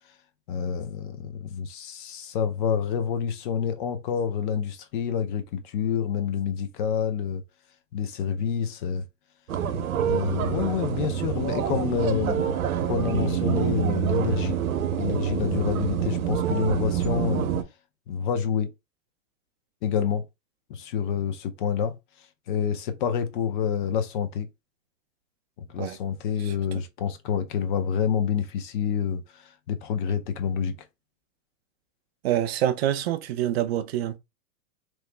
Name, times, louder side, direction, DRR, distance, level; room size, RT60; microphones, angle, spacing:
voice 1, 0.5-7.4 7.9-9.0 10.0-12.6 12.9-14.6 15.0-17.5 18.1-18.7 19.8-20.2 20.7-22.0 22.5-24.5 25.6-30.8, left 7 dB, 40° left, 0.5 m, -28 dB
sound 1, 9.5-17.6, right 9 dB, 90° right, 0.7 m, -26 dB
voice 2, 26.4-26.8 32.2-34.2, right 12 dB, 50° right, 0.4 m, -26 dB
3.0 x 2.0 x 3.2 m
hypercardioid pair, 140°, 41 cm